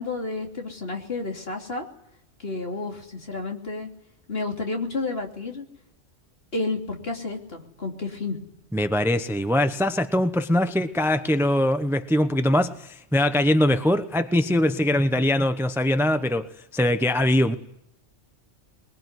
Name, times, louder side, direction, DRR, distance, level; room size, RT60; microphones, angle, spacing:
voice 1, 0.0-1.9 2.4-3.9 4.3-5.7 6.5-8.4, left 3 dB, 50° left, 2 dB, 3.4 m, -31 dB
voice 2, 8.7-17.6, left 1 dB, ahead, 9 dB, 0.9 m, -22 dB
22.0 x 22.0 x 9.7 m, 0.81 s
omnidirectional pair, 1.3 m